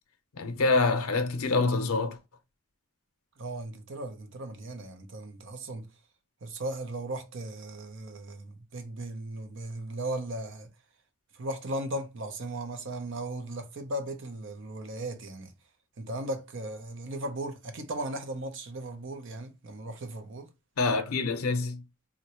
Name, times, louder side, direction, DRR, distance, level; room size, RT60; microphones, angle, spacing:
voice 1, 0.4-2.2 20.8-21.8, left 3 dB, 90° left, 0.6 m, -26 dB
voice 2, 3.4-5.9 6.4-10.7 11.3-15.5 16.0-20.5, right 1 dB, 60° right, 0.6 m, -37 dB
3.7 x 2.1 x 2.8 m
head